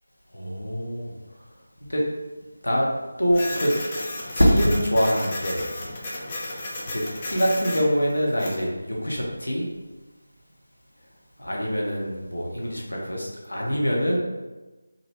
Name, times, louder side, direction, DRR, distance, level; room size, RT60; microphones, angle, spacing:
voice 1, 0.3-1.1 1.9-2.0 2.6-2.9 3.2-3.7 4.3-5.8 6.9-9.7 11.4-14.2, equal, 80° left, -3 dB, 0.8 m, -24 dB
Printer, 3.3-8.7, left 1 dB, 25° left, 0.4 m, -34 dB
2.4 x 2.0 x 3.3 m, 1.2 s
figure-of-eight pair, 165°, 0 cm